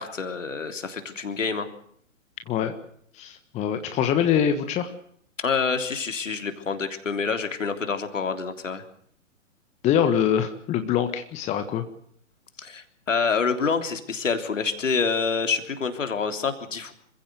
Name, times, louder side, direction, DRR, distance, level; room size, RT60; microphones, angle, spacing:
voice 1, 0.0-1.7 5.4-8.8 12.6-16.9, left 5 dB, 65° left, 7 dB, 3.5 m, -27 dB
voice 2, 3.1-4.9 9.8-11.8, left 9 dB, 15° left, 8 dB, 1.5 m, -24 dB
27.0 x 15.5 x 8.0 m, 0.66 s
figure-of-eight pair, 125°, 40 cm